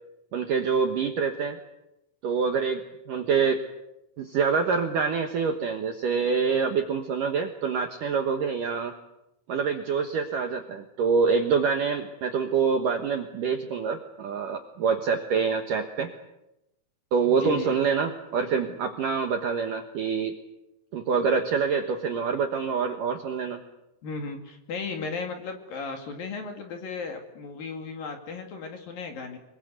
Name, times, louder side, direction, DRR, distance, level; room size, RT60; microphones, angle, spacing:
voice 1, 0.3-1.6 2.2-2.8 3.1-3.6 4.2-8.9 9.5-16.1 17.1-20.4 20.9-23.6, right 5 dB, 65° right, 4 dB, 2.1 m, -26 dB
voice 2, 17.2-17.7 24.0-29.4, left 4 dB, 55° left, 4 dB, 3.5 m, -35 dB
26.0 x 22.0 x 8.2 m, 0.91 s
omnidirectional pair, 5.6 m